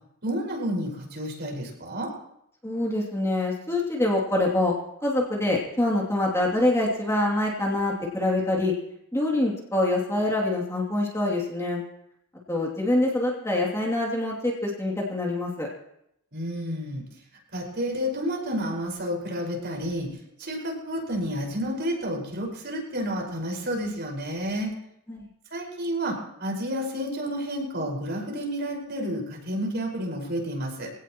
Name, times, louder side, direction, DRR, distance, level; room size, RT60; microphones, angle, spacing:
voice 1, 0.2-2.1 16.3-17.0 17.5-20.1 20.4-24.7 25.5-30.9, equal, 50° right, -1 dB, 5.3 m, -30 dB
voice 2, 2.6-4.7 5.0-8.7 9.1-11.8 12.5-15.7 25.1-25.3, left 1 dB, 15° left, -3 dB, 2.8 m, -25 dB
24.5 x 17.5 x 3.1 m, 0.76 s
head